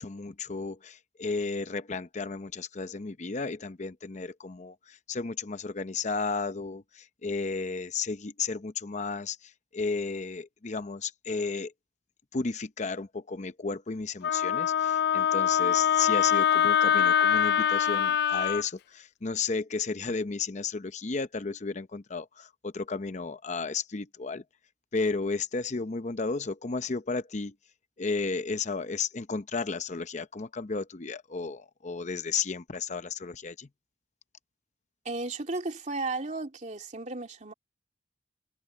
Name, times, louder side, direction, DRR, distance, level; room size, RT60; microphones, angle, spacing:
voice 1, 0.0-11.7 12.3-24.4 24.9-27.5 28.0-33.7, left 4 dB, 40° left, 0.7 m, -33 dB
Wind instrument woodwind instrument, 14.2-18.6, left 9 dB, 65° left, 0.3 m, -24 dB
voice 2, 35.0-37.5, right 3 dB, 45° right, 2.7 m, -34 dB
head